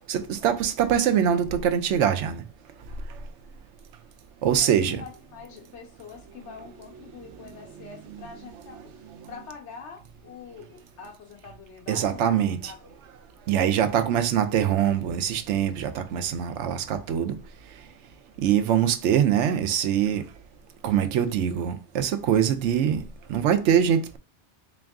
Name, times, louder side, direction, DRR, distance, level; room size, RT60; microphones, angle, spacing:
voice 1, 0.1-2.4 4.4-5.0 9.1-9.2 11.9-12.7 13.5-17.4 18.4-20.2 20.8-23.0 23.3-24.2, right 9 dB, 85° right, 0.9 m, -23 dB
voice 2, 4.5-12.3 12.6-13.0, left 6 dB, 80° left, 1.1 m, -45 dB
3.5 x 3.0 x 3.5 m
omnidirectional pair, 1.2 m